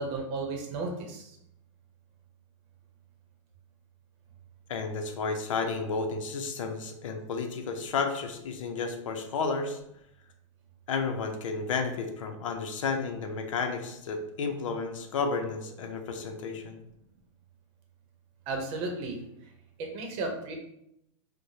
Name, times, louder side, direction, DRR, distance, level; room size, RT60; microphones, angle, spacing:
voice 1, 0.0-1.4 18.5-19.2 19.8-20.5, right 3 dB, 40° right, 2 dB, 0.8 m, -34 dB
voice 2, 4.7-9.8 10.9-16.8, left 4 dB, 90° left, 5 dB, 0.6 m, -32 dB
4.6 x 2.2 x 2.7 m, 0.80 s
supercardioid pair, 145°, 16 cm